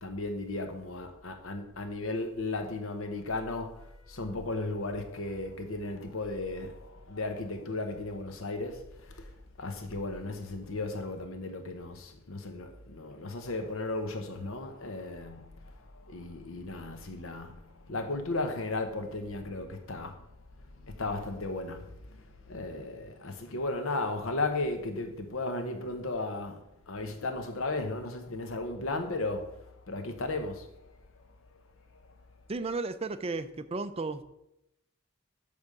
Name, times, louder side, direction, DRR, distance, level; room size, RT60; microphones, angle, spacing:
voice 1, 0.0-9.3 9.6-15.5 15.9-20.3 21.0-26.6 26.9-29.5 29.9-30.7, left 2 dB, 80° left, 1.0 m, -35 dB
voice 2, 32.5-34.2, right 3 dB, 30° right, 0.4 m, -34 dB
8.5 x 3.5 x 6.6 m
head